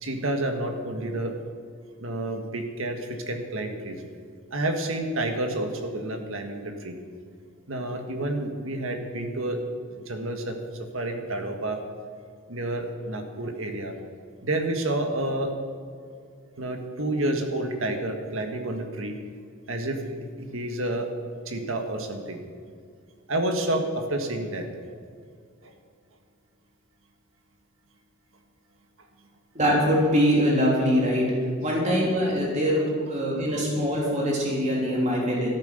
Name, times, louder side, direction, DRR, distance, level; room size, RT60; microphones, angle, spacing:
voice 1, 0.0-1.4 2.0-4.0 4.5-7.0 7.7-9.6 9.9-10.6 10.9-11.8 12.5-13.9 14.4-15.6 16.6-19.1 19.7-21.1 21.5-22.4 23.3-24.7 25.6-25.7 33.5-33.6, right 1 dB, 70° right, 5 dB, 1.7 m, -29 dB
voice 2, 29.5-31.3 31.6-35.5, equal, 35° right, -3 dB, 3.4 m, -23 dB
13.5 x 10.5 x 6.6 m, 2.2 s
head